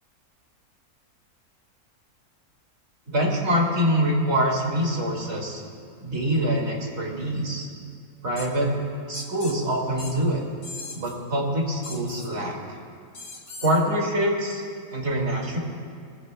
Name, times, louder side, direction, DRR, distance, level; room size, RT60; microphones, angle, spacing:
voice 1, 3.1-5.6 6.0-7.7 8.2-8.7 9.1-10.4 11.0-12.6 13.6-14.6 14.9-15.6, equal, 50° right, -1 dB, 2.4 m, -24 dB
sound 1, 8.4-8.5 9.1-9.6 10.0-10.1 10.6-11.1 11.8-12.3 13.1-13.8, left 3 dB, 70° left, 2.1 m, -39 dB
20.5 x 15.5 x 2.2 m, 2.2 s
omnidirectional pair, 1.5 m